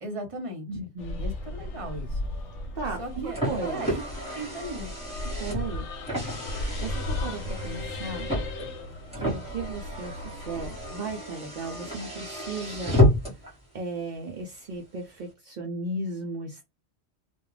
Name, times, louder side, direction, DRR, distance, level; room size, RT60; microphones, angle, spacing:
voice 1, 0.0-0.7 1.2-2.2 3.0-3.4 3.7-4.0 4.3-4.9, right 1 dB, 35° right, 0.8 m, -36 dB
voice 2, 0.7-1.2 2.7-3.8 5.2-5.9 6.8-8.3 9.2-13.0 13.5-16.6, right 3 dB, 60° right, 0.5 m, -35 dB
sound 1, 1.0-11.0, left 2 dB, 85° left, 0.9 m, -36 dB
Car, 2.9-13.5, left 1 dB, 5° right, 1.0 m, -30 dB
2.3 x 2.2 x 3.1 m
omnidirectional pair, 1.2 m